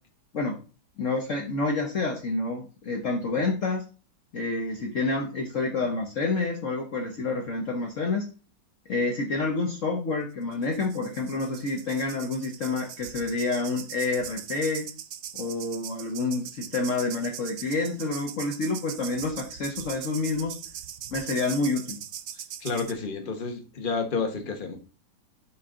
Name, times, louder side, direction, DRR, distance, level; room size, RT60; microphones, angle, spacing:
voice 1, 1.0-3.9 4.3-8.2 8.9-14.8 15.3-20.6 21.1-22.0, left 3 dB, 50° left, 2 dB, 1.3 m, -28 dB
sound 1, 10.5-22.9, right 10 dB, 75° right, 1.2 m, -41 dB
voice 2, 22.6-24.8, left 4 dB, 35° left, 5 dB, 1.4 m, -30 dB
11.5 x 4.0 x 3.8 m, 0.35 s
omnidirectional pair, 1.8 m